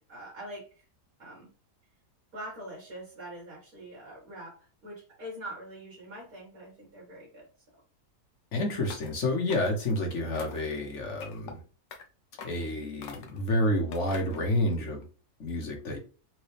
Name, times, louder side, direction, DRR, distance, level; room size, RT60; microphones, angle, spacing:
voice 1, 0.1-0.8 1.2-1.5 2.3-7.5, right 1 dB, 65° right, -3 dB, 2.3 m, -44 dB
voice 2, 8.5-11.6 12.4-15.0 15.4-16.0, left 1 dB, 50° left, 3 dB, 1.3 m, -29 dB
sound 1, 8.8-9.2 9.5-10.0 10.4-10.7 11.2-11.5 11.9-12.0 12.4-12.7 13.0-13.5 13.9-14.4, left 5 dB, 90° left, 1.4 m, -44 dB
4.3 x 3.6 x 3.3 m, 0.36 s
omnidirectional pair, 1.7 m